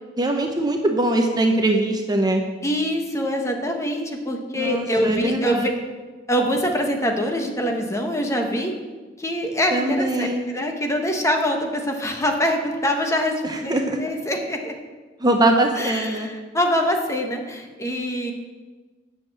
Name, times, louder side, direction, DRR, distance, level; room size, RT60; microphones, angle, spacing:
voice 1, 0.2-2.4 4.5-5.7 9.7-10.5 13.4-14.0 15.2-16.3, right 1 dB, 25° right, 3 dB, 0.8 m, -22 dB
voice 2, 2.6-5.7 6.3-8.7 9.2-14.8 15.8-18.3, equal, 15° left, 3 dB, 1.2 m, -24 dB
9.1 x 6.7 x 7.5 m, 1.3 s
head